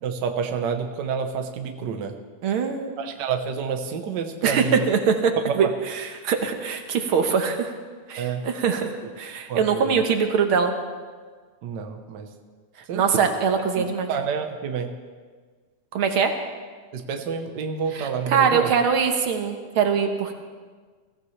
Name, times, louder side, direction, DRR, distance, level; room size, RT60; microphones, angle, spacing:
voice 1, 0.0-2.1 3.0-4.9 5.5-5.7 8.2-8.4 9.5-10.0 11.6-12.3 12.9-13.0 13.8-14.9 16.9-18.7, right 6 dB, 85° right, 5 dB, 0.9 m, -29 dB
voice 2, 2.4-3.0 4.4-7.7 8.1-10.7 12.9-14.1 15.9-16.4 17.9-20.4, right 6 dB, 60° right, 5 dB, 1.6 m, -23 dB
22.0 x 15.0 x 3.3 m, 1.5 s
omnidirectional pair, 3.3 m